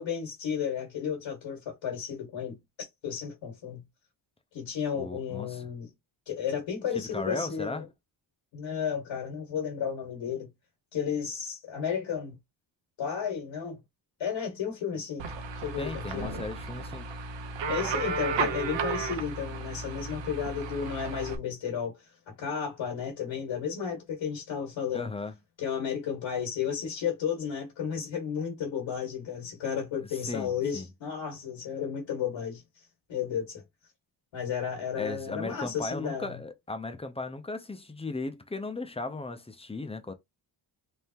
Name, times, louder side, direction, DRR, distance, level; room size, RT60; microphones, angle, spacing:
voice 1, 0.0-2.6 3.0-3.8 4.5-5.9 6.3-7.8 8.5-10.5 10.9-12.3 13.0-13.8 14.2-15.3 15.6-16.4 17.7-25.1 25.6-32.6 33.1-33.6 34.3-36.4, left 7 dB, 75° left, 1.8 m, -33 dB
voice 2, 4.9-5.6 6.9-7.9 15.8-17.1 24.9-25.3 30.2-30.9 35.0-40.1, left 3 dB, 15° left, 0.5 m, -36 dB
sound 1, 15.2-21.4, right 4 dB, 75° right, 0.9 m, -34 dB
3.6 x 3.3 x 2.8 m
wide cardioid pair, 165°, 45 cm